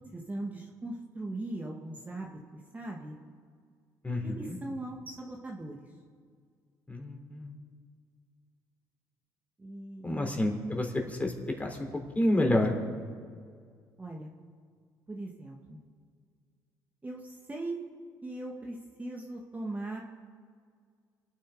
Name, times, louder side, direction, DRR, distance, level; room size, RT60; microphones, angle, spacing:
voice 1, 0.1-2.3 2.7-3.2 4.2-5.8 9.6-10.3 14.0-14.3 15.1-15.8 17.0-17.8 18.2-20.0, right 2 dB, 20° right, -1 dB, 2.0 m, -39 dB
voice 2, 4.0-4.6 6.9-7.5 10.0-11.3 11.6-11.8 12.2-12.7, left 1 dB, 20° left, 2 dB, 3.5 m, -29 dB
28.0 x 9.5 x 5.0 m, 2.1 s
supercardioid pair, 80°, 8 cm